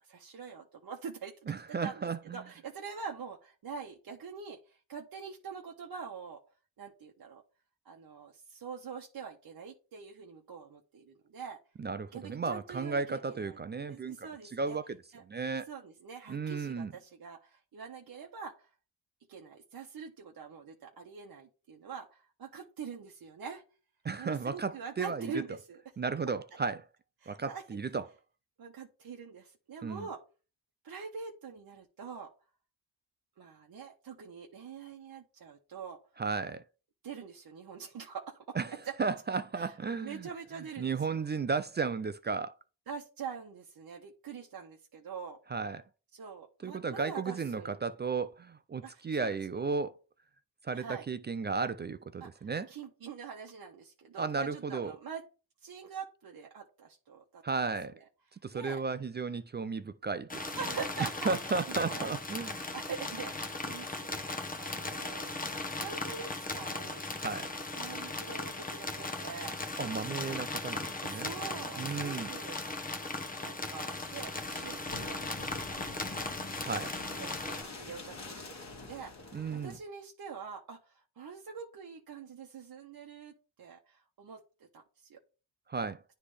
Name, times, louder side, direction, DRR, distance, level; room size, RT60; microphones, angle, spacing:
voice 1, 0.0-6.4 6.8-7.4 7.8-11.6 12.1-13.6 13.9-14.8 15.1-15.2 15.7-18.7 19.3-23.6 24.2-25.8 27.2-27.6 28.6-30.2 30.8-32.3 33.4-36.0 37.0-39.0 39.6-41.2 42.9-45.4 46.1-47.7 48.8-49.4 50.7-51.0 52.2-55.2 55.6-57.4 58.5-58.8 60.5-62.1 62.4-65.3 65.7-67.1 67.7-69.6 71.0-72.6 73.4-76.3 77.1-84.4 84.7-85.2, right 6 dB, 50° right, 1.0 m, -44 dB
voice 2, 1.5-2.4 11.8-15.0 15.3-15.7 16.3-16.9 24.0-25.4 26.0-26.9 27.3-28.1 29.8-30.1 36.2-36.6 38.5-40.3 40.8-42.5 45.5-45.8 46.6-50.0 50.6-52.7 54.2-54.9 57.4-58.0 58.3-60.5 61.3-62.7 67.2-67.5 69.8-71.3 71.8-72.3 76.6-76.9 79.3-79.8 85.7-86.0, right 4 dB, 25° right, 0.3 m, -34 dB
sound 1, 60.3-77.6, left 2 dB, 20° left, 1.0 m, -38 dB
sound 2, 73.9-79.8, left 3 dB, 35° left, 1.7 m, -46 dB
9.7 x 3.3 x 3.3 m
cardioid pair, 60°, 46 cm